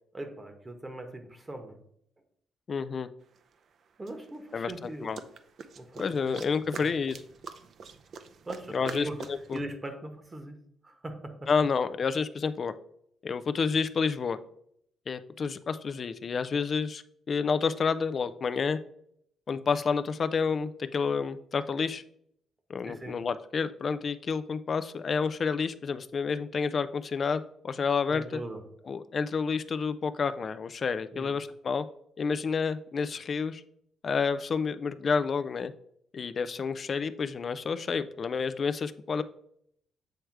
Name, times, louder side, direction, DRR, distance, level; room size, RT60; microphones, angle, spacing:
voice 1, 0.1-1.8 4.0-5.1 5.8-6.4 6.8-6.9 8.4-9.2 9.5-10.6 10.8-11.5 22.9-23.2 28.1-28.6 31.1-31.3, right 1 dB, 20° right, 6 dB, 1.1 m, -40 dB
voice 2, 2.7-3.1 4.5-5.2 6.0-7.2 8.7-9.6 11.5-12.7 13.2-14.4 15.1-18.8 19.5-22.0 22.7-28.4 28.9-31.9 32.2-33.6 34.0-35.7 36.1-39.2, left 5 dB, 45° left, 11 dB, 0.4 m, -29 dB
sound 1, 3.4-3.5 4.1-9.6, right 5 dB, 60° right, 0.6 m, -44 dB
7.7 x 3.3 x 4.7 m, 0.70 s
cardioid pair, 90°, 0 cm